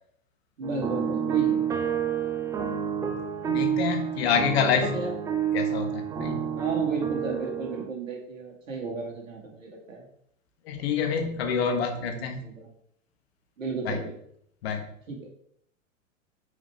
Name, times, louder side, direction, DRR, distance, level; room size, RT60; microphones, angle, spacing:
sound 1, 0.6-7.8, right 8 dB, 10° right, 0.4 m, -29 dB
voice 1, 0.6-1.6 4.7-5.1 6.6-10.1 11.0-11.4 11.7-12.7 13.6-14.2 15.1-15.2, right 4 dB, 70° right, 0 dB, 2.2 m, -34 dB
voice 2, 3.4-4.9 5.5-6.4 10.7-12.4 13.8-14.0 14.6-14.9, left 6 dB, 50° left, 5 dB, 1.3 m, -27 dB
8.8 x 5.0 x 3.4 m, 0.69 s
figure-of-eight pair, 100°, 40 cm